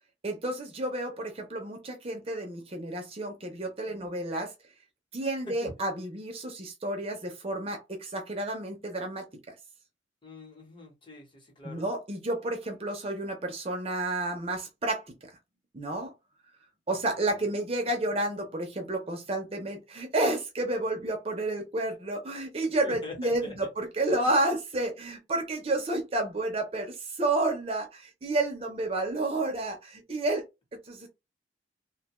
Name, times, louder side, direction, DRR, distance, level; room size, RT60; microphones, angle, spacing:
voice 1, 0.2-4.5 5.1-9.5 11.6-15.3 15.7-16.1 16.9-30.4 30.9-31.1, right 2 dB, 30° right, 0.5 m, -31 dB
voice 2, 3.8-4.2 5.4-5.7 10.2-11.8 16.9-17.6 22.8-23.6 24.1-24.3, left 2 dB, 25° left, 1.0 m, -44 dB
2.7 x 2.2 x 2.9 m
head